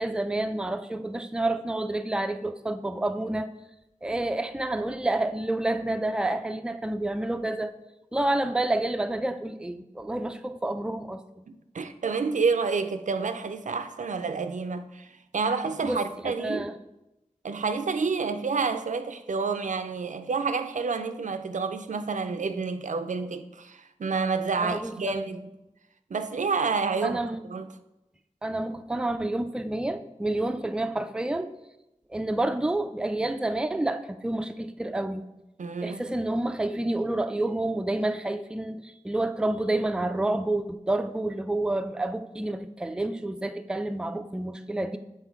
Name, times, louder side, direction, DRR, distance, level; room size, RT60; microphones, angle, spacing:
voice 1, 0.0-3.5 4.0-7.7 8.1-11.2 15.8-16.8 24.6-25.2 27.0-27.5 28.4-31.5 32.1-35.2 35.8-45.0, right 2 dB, 5° right, 0.3 m, -29 dB
voice 2, 11.5-16.7 17.4-25.5 26.1-27.2 27.5-27.7 35.6-36.0, right 4 dB, 80° right, 0.4 m, -29 dB
7.3 x 3.8 x 4.7 m
wide cardioid pair, 65°, 13 cm